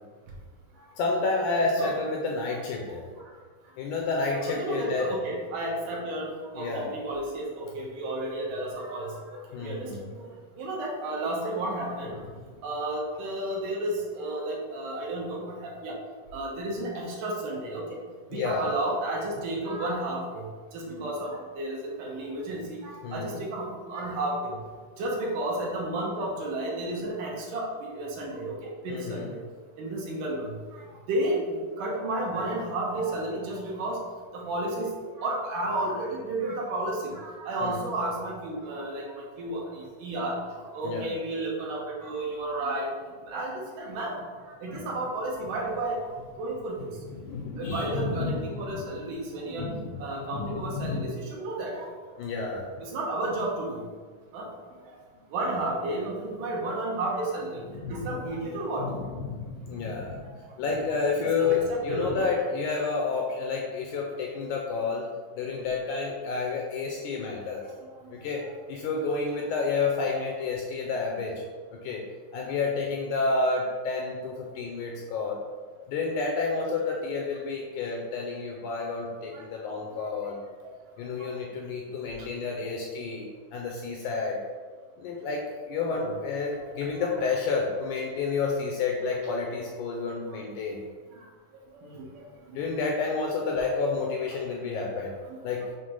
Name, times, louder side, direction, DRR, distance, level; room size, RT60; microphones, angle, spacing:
voice 1, 1.0-3.1 3.8-5.1 6.6-6.9 9.5-10.0 12.4-12.5 18.3-18.7 23.0-23.4 28.9-29.3 37.6-37.8 40.8-41.1 44.8-44.9 47.2-48.8 49.6-50.0 50.3-51.1 52.2-52.7 57.7-58.3 58.8-65.1 65.3-67.7 68.1-71.3 71.8-72.0 72.3-75.4 75.9-80.4 81.0-84.4 85.0-90.8 92.5-95.1 95.4-95.7, left 4 dB, 80° left, 0 dB, 1.8 m, -30 dB
voice 2, 4.5-6.3 6.5-9.1 9.6-10.3 10.6-12.2 12.6-15.9 16.3-17.8 18.3-20.4 20.7-24.6 25.0-29.4 29.8-30.5 31.1-34.0 34.3-34.9 35.2-42.9 43.3-44.2 44.6-46.0 46.4-46.9 47.6-49.7 50.0-51.9 52.8-53.8 54.3-54.5 54.9-55.0 55.3-57.6 57.9-58.9 61.2-62.3 62.7-62.8 79.3-79.4 86.0-86.1 86.6-86.7 87.0-87.1 91.8-92.0 94.0-94.1 94.8-94.9, right 1 dB, 70° right, -2 dB, 2.5 m, -32 dB
6.6 x 3.2 x 5.4 m, 1.5 s
omnidirectional pair, 4.1 m